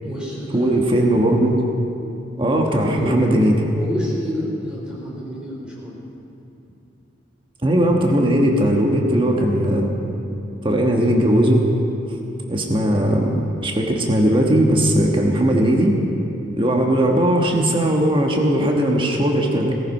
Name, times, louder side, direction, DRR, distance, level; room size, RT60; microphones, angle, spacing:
voice 1, 0.0-0.7 2.9-3.2 3.7-6.0, equal, 5° right, -5 dB, 4.2 m, -29 dB
voice 2, 0.5-1.6 2.4-3.6 7.6-9.9 10.6-11.7 12.1-12.2 12.5-13.3 13.6-16.0 16.6-19.7, right 1 dB, 25° right, 0 dB, 1.4 m, -18 dB
18.0 x 13.5 x 5.5 m, 2.7 s
head